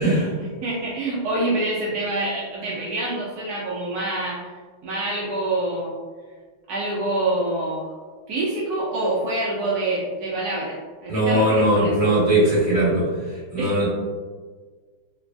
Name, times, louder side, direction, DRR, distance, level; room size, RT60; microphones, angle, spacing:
voice 1, 0.4-4.5 4.8-5.9 6.7-7.9 8.3-12.1 13.6-13.9, right 2 dB, 85° right, -5 dB, 0.8 m, -26 dB
voice 2, 11.1-13.0 13.5-13.9, right 1 dB, 20° right, -9 dB, 1.1 m, -19 dB
3.3 x 2.3 x 2.3 m, 1.5 s
omnidirectional pair, 2.2 m